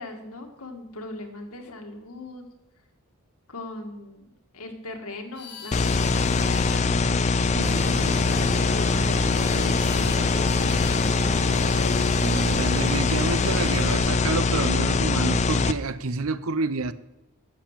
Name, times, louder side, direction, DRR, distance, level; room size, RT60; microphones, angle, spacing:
voice 1, 0.0-2.4 3.5-7.0 7.6-12.1, left 2 dB, 80° left, 2.0 m, -39 dB
sound 1, 5.3-6.8 7.5-8.7 9.4-10.2 10.5-11.2 11.5-12.6, left 6 dB, 50° left, 1.7 m, -42 dB
sound 2, 5.7-15.7, left 4 dB, 30° left, 0.5 m, -23 dB
voice 2, 7.4-7.8 12.2-16.9, right 3 dB, 70° right, 0.7 m, -29 dB
Engine, 7.6-14.0, equal, 15° right, 3.5 m, -35 dB
11.5 x 7.7 x 7.4 m
head